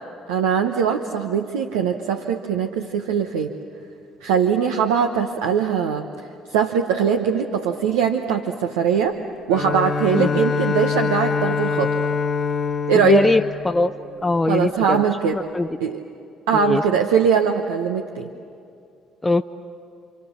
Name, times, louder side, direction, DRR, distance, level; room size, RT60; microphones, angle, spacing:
voice 1, 0.3-3.5 4.2-6.1 6.5-9.2 9.5-11.9 12.9-13.3 14.5-15.4 15.8-16.0 16.5-18.3, right 7 dB, 85° right, 4 dB, 1.0 m, -21 dB
Bowed string instrument, 9.5-14.6, left 6 dB, 45° left, 1.6 m, -25 dB
voice 2, 13.0-13.9 14.2-15.0 15.3-15.7 16.5-16.8 19.2-19.4, left 2 dB, 20° left, 6 dB, 0.7 m, -20 dB
29.5 x 26.5 x 7.2 m, 2.5 s
hypercardioid pair, 55°, 0 cm